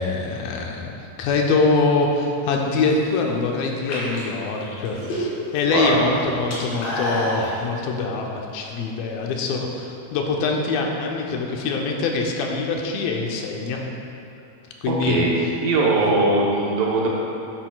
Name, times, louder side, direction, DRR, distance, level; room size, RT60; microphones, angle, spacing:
voice 1, 0.0-13.8 14.8-15.3, left 3 dB, 80° left, 1 dB, 2.4 m, -24 dB
sound 1, 2.7-3.2 3.7-5.6 5.9-7.5, equal, 55° left, 2.7 m, -28 dB
voice 2, 5.7-6.0 14.9-15.3 15.6-17.1, right 3 dB, 75° right, -3 dB, 2.5 m, -20 dB
10.0 x 7.9 x 2.3 m, 2.7 s
omnidirectional pair, 4.3 m